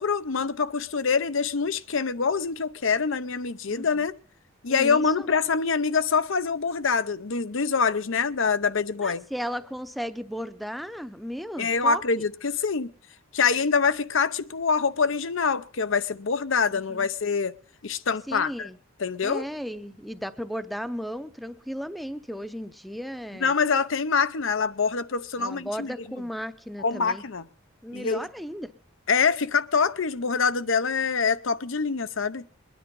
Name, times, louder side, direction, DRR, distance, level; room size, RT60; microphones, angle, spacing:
voice 1, 0.0-4.1 4.6-9.2 11.6-12.9 13.3-17.5 17.8-18.7 19.0-19.4 23.4-25.9 26.8-27.4 27.9-28.3 29.1-32.4, left 5 dB, 65° left, 0.7 m, -25 dB
voice 2, 3.7-4.1 4.7-5.3 9.0-12.2 16.9-17.1 18.3-18.8 19.2-23.5 25.4-27.2 27.8-28.7, equal, ahead, 0.6 m, -35 dB
22.0 x 10.0 x 5.4 m
head